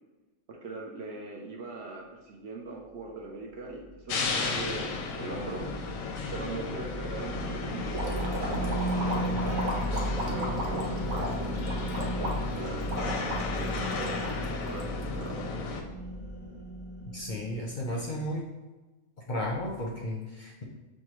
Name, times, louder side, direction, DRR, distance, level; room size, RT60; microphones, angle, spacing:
voice 1, 0.5-5.7 6.3-11.1 12.0-15.5, right 2 dB, 60° right, 0 dB, 0.8 m, -41 dB
sound 1, 3.7-18.2, right 1 dB, 10° right, 0.6 m, -35 dB
sound 2, 4.1-15.8, left 4 dB, 85° left, 1.0 m, -35 dB
sound 3, 7.9-15.2, right 1 dB, 90° right, 1.3 m, -35 dB
voice 2, 17.1-18.4 19.3-20.6, left 1 dB, 45° left, -3 dB, 0.7 m, -33 dB
6.5 x 2.2 x 3.0 m, 1.2 s
omnidirectional pair, 1.4 m